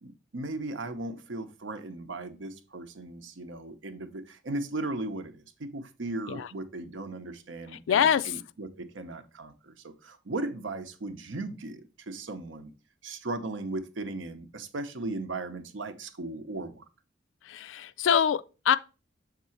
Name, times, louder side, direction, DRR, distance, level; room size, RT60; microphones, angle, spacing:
voice 1, 0.0-12.7 13.0-16.8, right 2 dB, 85° right, 0.8 m, -37 dB
voice 2, 7.9-8.3 17.5-18.8, left 8 dB, 85° left, 0.3 m, -24 dB
6.6 x 3.7 x 4.3 m
head